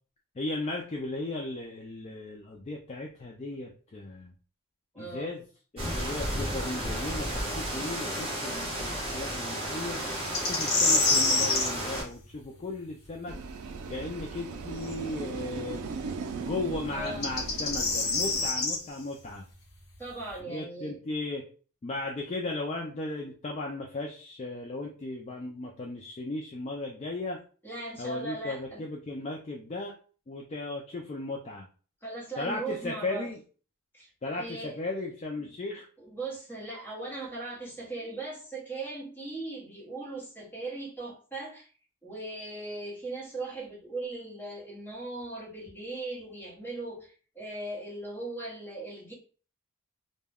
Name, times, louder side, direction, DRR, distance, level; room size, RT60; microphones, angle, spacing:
voice 1, 0.4-4.3 5.0-5.4 5.7-10.0 10.4-13.4 13.9-15.8 16.5-19.5 20.5-21.4 21.8-27.4 28.0-29.9 30.3-31.7 32.4-33.4 34.2-35.9, left 2 dB, 30° left, -1 dB, 0.3 m, -36 dB
voice 2, 4.9-5.4 16.9-17.3 20.0-20.9 27.6-29.1 32.0-33.3 33.9-34.1 34.3-34.8 36.0-41.7 42.0-49.1, right 2 dB, 10° left, -5 dB, 1.0 m, -39 dB
sound 1, 5.8-12.0, right 1 dB, 25° right, 0.9 m, -33 dB
sound 2, 10.3-11.7 14.9-15.0 17.1-18.8, left 3 dB, 50° left, 0.7 m, -25 dB
sound 3, 13.3-18.5, right 4 dB, 75° right, 0.4 m, -38 dB
2.2 x 2.1 x 3.3 m, 0.39 s
head